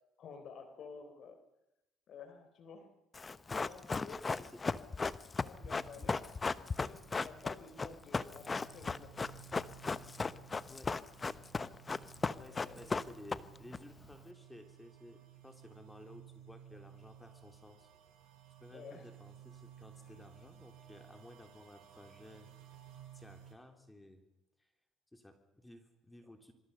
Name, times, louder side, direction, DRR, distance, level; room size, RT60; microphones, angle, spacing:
voice 1, 0.2-1.4 2.1-2.9 3.6-4.5 4.7-4.9 5.4-6.3 6.7-9.1 12.5-12.9 18.7-19.1 20.0-20.2, left 5 dB, 60° left, 8 dB, 3.6 m, -52 dB
Run, 3.1-13.8 14.0-14.1, left 4 dB, 30° left, 1.0 m, -36 dB
voice 2, 4.2-4.6 10.7-10.9 12.3-17.9 18.6-22.5 23.1-24.2 24.6-24.7 25.1-26.5, left 1 dB, 10° left, 5 dB, 3.3 m, -55 dB
sound 1, 5.6-23.5, right 10 dB, 75° right, 6.2 m, -57 dB
26.5 x 24.0 x 5.6 m, 0.90 s
supercardioid pair, 70°, 0 cm